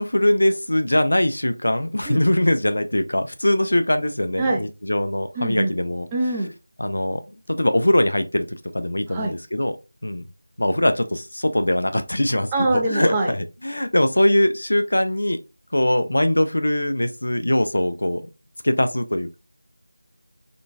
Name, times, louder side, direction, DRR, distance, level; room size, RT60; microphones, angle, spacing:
voice 1, 0.0-6.1 6.8-7.2 7.5-8.5 8.7-9.7 10.0-10.2 10.6-15.4 15.7-18.2 18.6-19.4, left 1 dB, 70° left, 0.5 m, -21 dB
voice 2, 5.4-5.7 6.1-6.5 9.1-9.3 12.5-13.3, right 2 dB, 15° right, 0.5 m, -23 dB
3.8 x 2.3 x 2.2 m
figure-of-eight pair, 165°, 0 cm